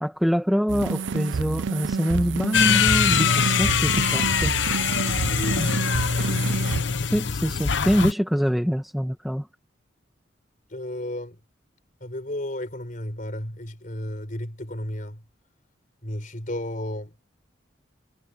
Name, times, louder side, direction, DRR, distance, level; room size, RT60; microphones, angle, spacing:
voice 1, 0.0-4.5 7.1-9.5, equal, ahead, 1.1 m, -24 dB
sound 1, 0.7-6.8, right 5 dB, 70° right, 0.4 m, -29 dB
sound 2, 2.5-8.1, left 6 dB, 70° left, 0.9 m, -23 dB
voice 2, 5.0-6.5 10.7-11.4 12.0-15.2 16.0-17.1, left 1 dB, 45° left, 4.1 m, -33 dB
head